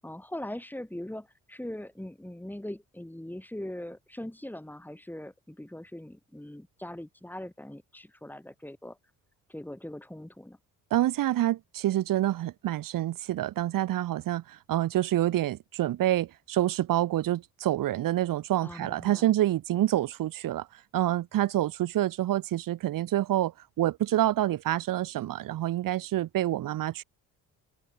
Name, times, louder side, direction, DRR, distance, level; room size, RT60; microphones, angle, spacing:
voice 1, 0.0-9.0 9.5-10.6 18.6-19.3, left 1 dB, 5° left, 7.4 m, -41 dB
voice 2, 10.9-20.7 20.9-23.5 23.8-27.0, right 13 dB, 75° right, 2.9 m, -27 dB
open air
cardioid pair, 85°, 33 cm